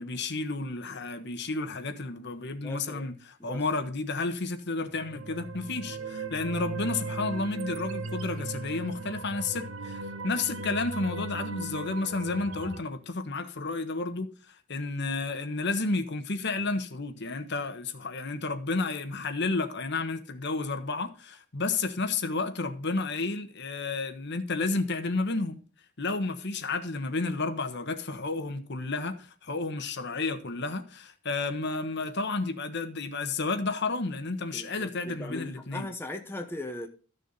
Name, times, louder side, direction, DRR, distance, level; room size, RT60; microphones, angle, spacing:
voice 1, 0.0-25.6 26.0-35.9, left 3 dB, 60° left, 1.3 m, -31 dB
voice 2, 2.6-3.1 3.4-3.6 34.5-36.9, left 1 dB, 10° left, 1.1 m, -39 dB
sound 1, 4.9-12.8, right 3 dB, 85° right, 1.2 m, -37 dB
13.5 x 6.8 x 4.1 m
head